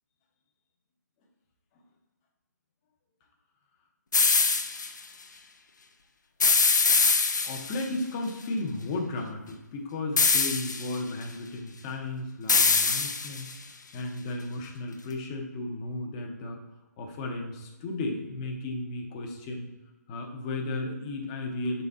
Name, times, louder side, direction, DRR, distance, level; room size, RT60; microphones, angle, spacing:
sound 1, 4.1-4.9 6.4-7.8 10.2-10.9 12.5-13.5, left 4 dB, 85° left, 0.6 m, -23 dB
voice 1, 7.4-13.5 13.9-16.6 17.0-19.7 20.1-21.8, left 2 dB, 20° left, 1 dB, 0.7 m, -34 dB
6.5 x 4.1 x 3.5 m, 1.1 s
hypercardioid pair, 165°, 10 cm